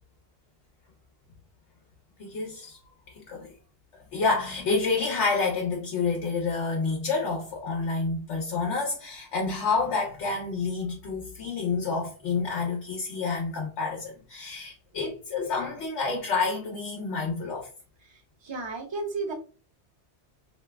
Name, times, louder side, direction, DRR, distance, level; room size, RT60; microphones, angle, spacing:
voice 1, 2.2-2.8 3.1-3.5 4.1-17.7, left 4 dB, 80° left, 1.1 m, -29 dB
voice 2, 18.0-19.3, right 3 dB, 30° right, 0.6 m, -34 dB
3.2 x 2.9 x 2.2 m
omnidirectional pair, 1.2 m